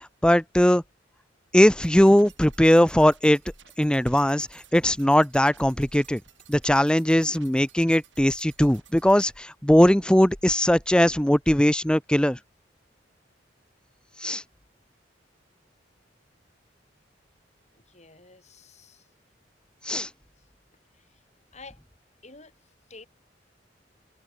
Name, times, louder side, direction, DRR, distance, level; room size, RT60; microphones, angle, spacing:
voice 1, 0.2-0.8 1.5-3.4 3.8-4.5 4.7-6.2 6.5-12.4 14.2-14.4 19.9-20.1, equal, 5° left, 0.8 m, -20 dB
sound 1, 1.8-9.3, right 10 dB, 90° right, 6.4 m, -55 dB
voice 2, 17.7-19.1 20.9-21.2 21.5-21.8 22.2-23.1, left 3 dB, 40° left, 7.5 m, -50 dB
head